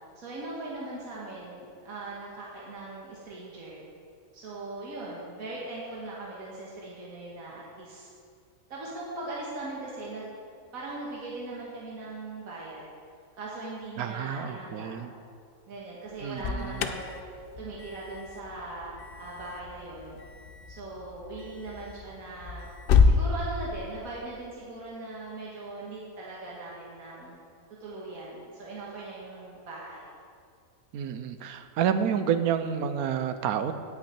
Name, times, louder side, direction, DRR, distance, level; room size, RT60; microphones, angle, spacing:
voice 1, 0.2-3.8 4.3-8.1 8.7-10.3 10.7-12.8 13.4-15.0 15.7-17.1 17.6-20.2 20.7-22.7 23.0-27.4 27.8-30.1, right 2 dB, 65° right, -6 dB, 2.0 m, -40 dB
voice 2, 14.0-15.1 16.2-16.8 30.9-33.7, right 8 dB, 85° right, 10 dB, 1.1 m, -29 dB
Alarm, 16.1-23.2, left 5 dB, 60° left, 0.6 m, -29 dB
17.5 x 5.9 x 4.4 m, 2.3 s
omnidirectional pair, 1.5 m